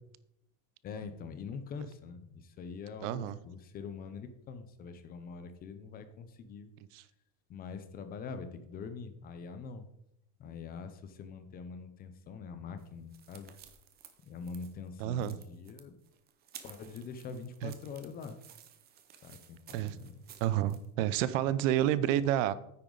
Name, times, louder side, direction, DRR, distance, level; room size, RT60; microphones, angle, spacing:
voice 1, 0.8-6.7 7.5-9.9 10.4-13.5 14.2-15.9 16.6-18.4 19.2-20.2, left 5 dB, 25° left, 10 dB, 0.7 m, -44 dB
voice 2, 3.0-3.4 6.9-7.0 15.0-15.4 17.6-17.7 19.7-20.0 20.4-22.5, right 12 dB, 80° right, 16 dB, 0.8 m, -29 dB
sound 1, 12.8-20.9, right 9 dB, 25° right, 0.8 m, -55 dB
9.8 x 8.9 x 4.0 m, 0.79 s
cardioid pair, 175°, 38 cm